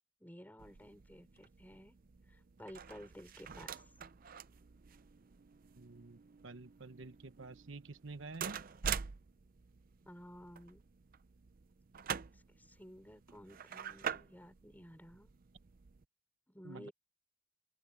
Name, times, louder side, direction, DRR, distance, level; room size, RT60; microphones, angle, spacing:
voice 1, 0.2-2.0 2.3-3.8 10.1-10.8 12.3-15.3 16.5-16.9, equal, 10° left, 5.2 m, -54 dB
sound 1, 0.6-16.0, right 7 dB, 45° right, 0.5 m, -46 dB
voice 2, 5.8-8.6 16.6-16.9, right 3 dB, 65° right, 1.0 m, -49 dB
open air
head